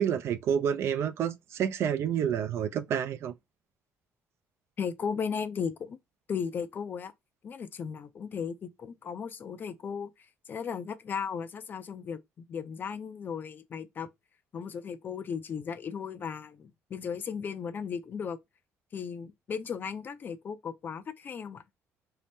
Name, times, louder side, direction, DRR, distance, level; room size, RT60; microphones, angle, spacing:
voice 1, 0.0-3.3, right 8 dB, 60° right, 0.4 m, -29 dB
voice 2, 4.8-6.0 6.3-7.1 7.4-10.1 10.5-14.1 14.5-18.4 18.9-21.6, left 6 dB, 40° left, 0.4 m, -36 dB
2.7 x 2.0 x 3.3 m
cardioid pair, 100°, 5 cm